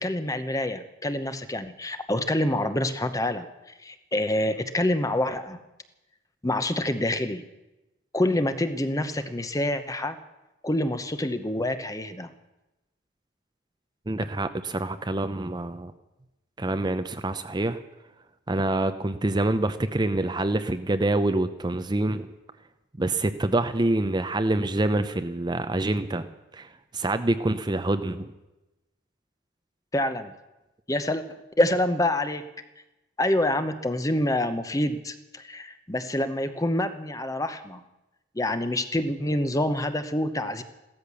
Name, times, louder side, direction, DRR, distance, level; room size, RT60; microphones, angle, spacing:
voice 1, 0.0-3.5 3.8-5.6 6.4-7.5 8.1-10.2 10.6-12.3 29.9-30.3 30.9-32.4 33.2-37.8 38.3-40.6, left 1 dB, 15° left, 10 dB, 0.8 m, -26 dB
voice 2, 14.1-15.9 16.6-17.8 18.5-22.3 23.0-26.3 26.5-28.3, right 2 dB, 20° right, 9 dB, 0.6 m, -26 dB
15.5 x 13.0 x 7.0 m, 1.0 s
head